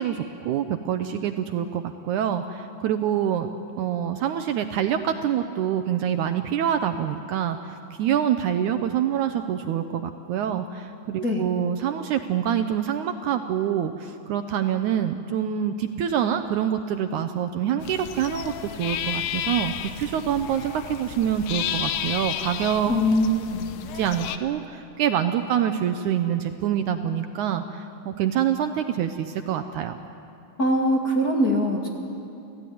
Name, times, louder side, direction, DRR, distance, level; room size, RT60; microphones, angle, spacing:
voice 1, 0.0-3.5 3.8-22.9 23.9-30.0, right 9 dB, 75° right, 8 dB, 1.9 m, -26 dB
sound 1, 17.8-24.4, left 10 dB, 85° left, 2.7 m, -32 dB
voice 2, 22.9-23.7 30.6-31.9, equal, 35° left, 0 dB, 1.7 m, -22 dB
29.0 x 16.0 x 9.4 m, 2.7 s
omnidirectional pair, 4.0 m